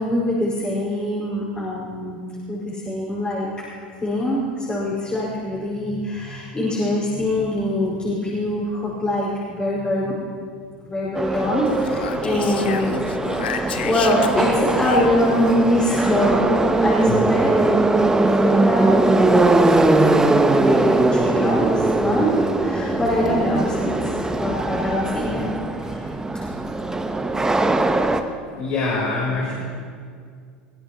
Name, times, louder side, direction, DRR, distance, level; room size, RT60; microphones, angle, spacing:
voice 1, 0.0-2.2 2.5-3.5 4.0-10.1 10.8-13.0 13.3-17.5 18.1-25.5 25.8-26.1, left 1 dB, 20° left, -7 dB, 5.1 m, -24 dB
Subway metro underground, 11.1-28.2, right 2 dB, 10° right, 1.0 m, -20 dB
Speech, 11.7-15.6, left 7 dB, 80° left, 0.9 m, -31 dB
voice 2, 17.1-17.5 28.5-29.5, left 3 dB, 50° left, -5 dB, 4.3 m, -25 dB
20.5 x 17.0 x 3.1 m, 2.1 s
hypercardioid pair, 80°, 5 cm